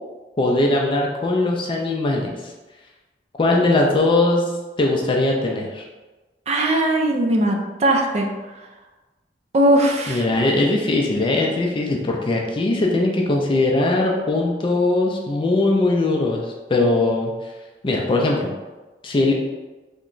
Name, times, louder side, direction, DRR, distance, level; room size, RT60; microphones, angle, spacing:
voice 1, 0.4-2.5 3.4-4.4 4.8-5.8 10.1-17.3 17.8-18.5 19.0-19.3, left 2 dB, 30° left, 0 dB, 0.4 m, -20 dB
voice 2, 6.5-8.3 9.5-10.2, right 1 dB, 40° right, 1 dB, 0.4 m, -19 dB
2.9 x 2.2 x 3.8 m, 1.2 s
head